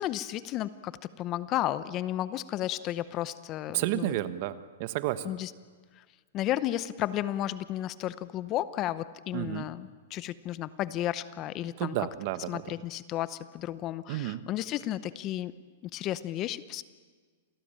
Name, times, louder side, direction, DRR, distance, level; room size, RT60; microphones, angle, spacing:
voice 1, 0.0-4.1 5.2-5.5 6.3-11.9 12.5-15.5 15.9-16.8, left 13 dB, 30° left, 16 dB, 0.8 m, -33 dB
voice 2, 3.7-5.3 9.3-9.7 11.8-12.6 14.1-14.5, right 15 dB, 45° right, 13 dB, 1.2 m, -31 dB
27.5 x 18.0 x 8.8 m, 1.5 s
hypercardioid pair, 150°, 0 cm